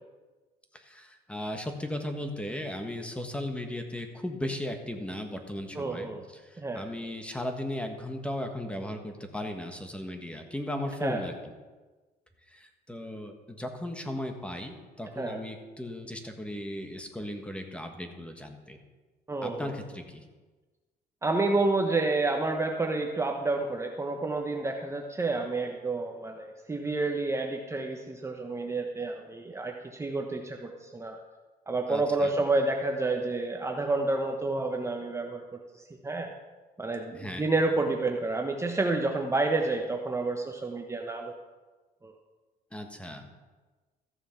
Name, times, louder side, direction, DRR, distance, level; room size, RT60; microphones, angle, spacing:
voice 1, 0.7-11.3 12.5-18.8 19.4-20.2 31.9-32.4 37.1-37.5 42.7-43.3, left 1 dB, 5° left, 5 dB, 1.4 m, -36 dB
voice 2, 5.7-6.2 6.6-6.9 11.0-11.2 15.2-15.4 19.3-19.7 21.2-31.2 31.7-35.4 35.7-36.3 36.8-41.3 42.0-42.1, right 3 dB, 15° right, 2 dB, 1.0 m, -29 dB
14.0 x 6.9 x 5.9 m, 1.3 s
cardioid pair, 110°, 17 cm